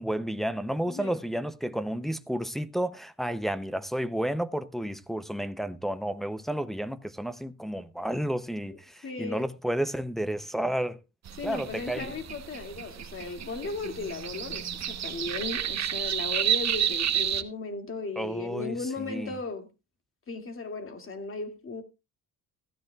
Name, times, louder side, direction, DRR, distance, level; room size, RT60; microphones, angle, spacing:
voice 1, 0.0-11.0 11.4-12.2 18.2-18.8 19.1-19.4, right 1 dB, ahead, 0.6 m, -31 dB
voice 2, 0.9-1.2 8.7-8.8 9.0-9.5 11.4-19.7 20.3-21.8, left 4 dB, 35° left, 2.3 m, -36 dB
sound 1, 11.3-17.4, right 10 dB, 45° right, 1.0 m, -31 dB
15.5 x 13.0 x 2.3 m
cardioid pair, 130°, 36 cm